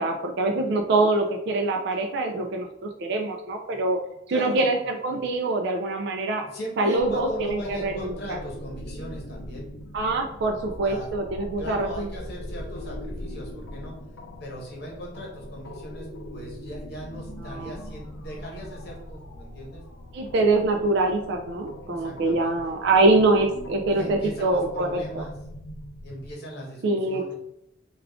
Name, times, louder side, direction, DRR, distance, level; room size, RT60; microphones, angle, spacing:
voice 1, 0.0-4.0 4.3-6.4 6.8-8.4 9.9-12.1 17.5-17.8 20.1-25.3 26.8-27.3, right 2 dB, 60° right, 3 dB, 0.4 m, -24 dB
voice 2, 4.3-4.7 5.1-5.3 6.5-9.7 10.8-11.1 11.6-13.9 14.4-19.8 22.0-22.6 23.9-25.3 26.0-27.3, equal, 55° left, -2 dB, 1.0 m, -39 dB
sound 1, 7.0-26.3, left 1 dB, 80° left, 0.5 m, -40 dB
3.5 x 2.4 x 3.4 m, 0.81 s
head